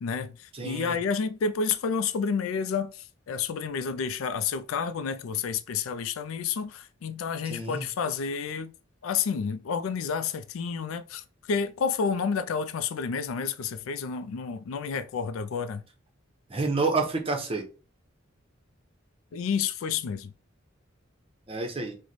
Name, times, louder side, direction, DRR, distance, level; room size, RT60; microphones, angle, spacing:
voice 1, 0.0-8.7 9.0-15.8 19.3-20.3, left 6 dB, 85° left, 0.4 m, -30 dB
voice 2, 0.5-1.0 7.5-7.9 16.5-17.6 21.5-22.0, right 3 dB, 30° right, 0.7 m, -29 dB
3.1 x 2.1 x 4.0 m
head